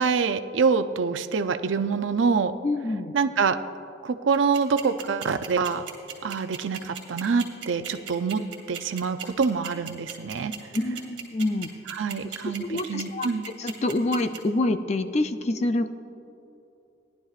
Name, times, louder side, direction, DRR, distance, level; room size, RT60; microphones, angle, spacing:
voice 1, 0.0-2.5 3.1-3.6 4.0-5.9 6.2-10.5 11.9-13.4, right 5 dB, 85° right, 10 dB, 0.5 m, -25 dB
voice 2, 2.6-3.2 10.7-11.7 12.4-15.9, left 2 dB, 35° left, 9 dB, 0.4 m, -27 dB
sound 1, 4.3-14.4, right 10 dB, 65° right, 2.0 m, -36 dB
18.0 x 11.5 x 2.4 m, 2.8 s
head